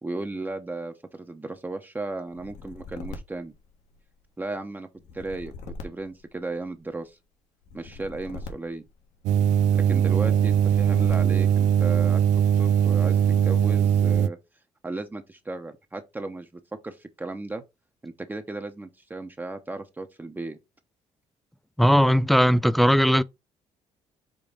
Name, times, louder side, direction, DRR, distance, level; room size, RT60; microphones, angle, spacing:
voice 1, 0.0-3.5 4.4-4.9 5.1-5.5 5.8-7.2 7.7-8.8 9.7-12.2 12.6-14.4 14.8-16.5 16.8-17.6 18.0-20.6, right 2 dB, 15° right, 0.8 m, -35 dB
sound 1, 2.3-4.3 5.0-6.9 7.6-9.6 10.3-11.6, left 3 dB, 75° left, 1.5 m, -42 dB
sound 2, 9.3-14.3, right 9 dB, 85° right, 0.4 m, -20 dB
voice 2, 21.8-23.2, equal, ahead, 0.4 m, -18 dB
5.3 x 3.6 x 5.0 m
cardioid pair, 105°, 12 cm